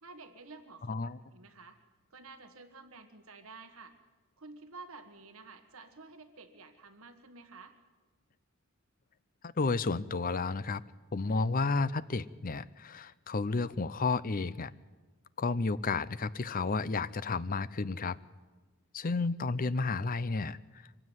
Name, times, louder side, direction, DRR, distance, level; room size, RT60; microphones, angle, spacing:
voice 1, 0.0-1.8 2.1-3.9 4.4-7.8, right 3 dB, 65° right, 8 dB, 1.7 m, -51 dB
voice 2, 0.9-1.2 9.4-10.8 11.1-14.7 15.4-18.2 18.9-20.6, left 3 dB, 40° left, 17 dB, 0.6 m, -31 dB
24.0 x 16.0 x 9.3 m, 1.3 s
head